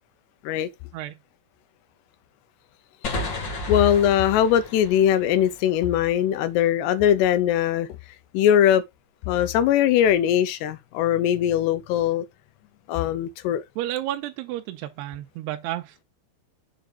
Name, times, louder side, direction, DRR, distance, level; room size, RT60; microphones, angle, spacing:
sound 1, 3.0-6.5, left 2 dB, 55° left, 1.3 m, -34 dB
voice 1, 3.7-7.9 8.3-8.8 9.3-12.2 12.9-13.6, left 10 dB, 80° left, 2.9 m, -21 dB
voice 2, 13.8-16.0, right 13 dB, 80° right, 2.6 m, -31 dB
7.1 x 4.9 x 3.8 m
omnidirectional pair, 5.1 m